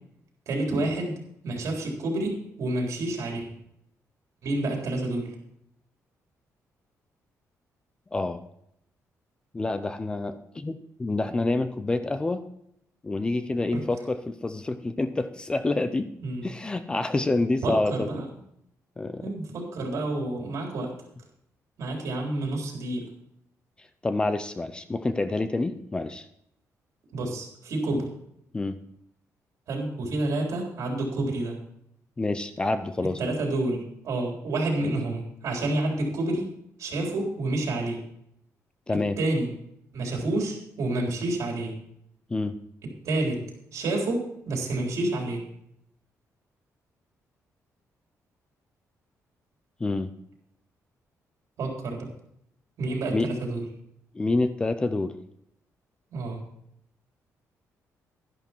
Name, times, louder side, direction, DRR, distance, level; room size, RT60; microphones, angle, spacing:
voice 1, 0.5-1.1 1.4-3.5 4.4-5.3 16.2-16.5 17.6-18.3 19.2-20.9 21.8-23.1 27.1-28.1 29.7-31.6 33.2-36.5 36.8-38.0 39.2-39.5 39.9-41.8 43.0-43.4 43.7-45.4 51.6-52.1 52.8-53.6 56.1-56.4, right 2 dB, 60° right, 0 dB, 3.9 m, -29 dB
voice 2, 8.1-8.4 9.5-12.4 13.0-16.1 16.4-18.1 19.0-19.3 23.8-26.3 28.5-28.8 32.2-33.3 34.8-34.9 38.9-39.2 42.3-42.6 49.8-50.1 53.1-53.3 54.1-55.1, left 2 dB, 15° left, 11 dB, 0.5 m, -27 dB
12.0 x 11.0 x 4.5 m, 0.74 s
cardioid pair, 170°, 6 cm